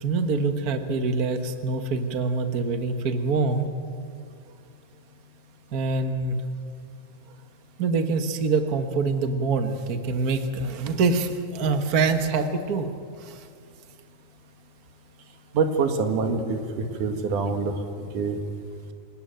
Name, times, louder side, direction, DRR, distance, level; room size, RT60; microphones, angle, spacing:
voice 1, 0.0-3.7 5.7-6.4 7.8-12.9 13.2-13.5, right 4 dB, 85° right, 7 dB, 0.8 m, -25 dB
voice 2, 15.5-18.4, right 4 dB, 65° right, 5 dB, 3.3 m, -26 dB
28.0 x 18.0 x 9.2 m, 2.3 s
omnidirectional pair, 3.9 m